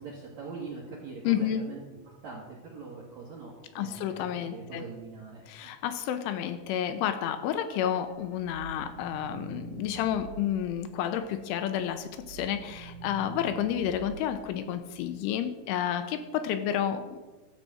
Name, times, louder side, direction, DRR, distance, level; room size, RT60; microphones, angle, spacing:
voice 1, 0.0-4.1 4.5-5.7, right 4 dB, 75° right, -3 dB, 1.6 m, -42 dB
voice 2, 1.3-1.6 3.8-4.8 5.5-17.2, left 10 dB, 85° left, 10 dB, 3.0 m, -30 dB
sound 1, 7.6-11.5 11.9-15.3, right 6 dB, 45° right, 2.4 m, -46 dB
12.5 x 5.6 x 7.6 m, 1.2 s
omnidirectional pair, 5.8 m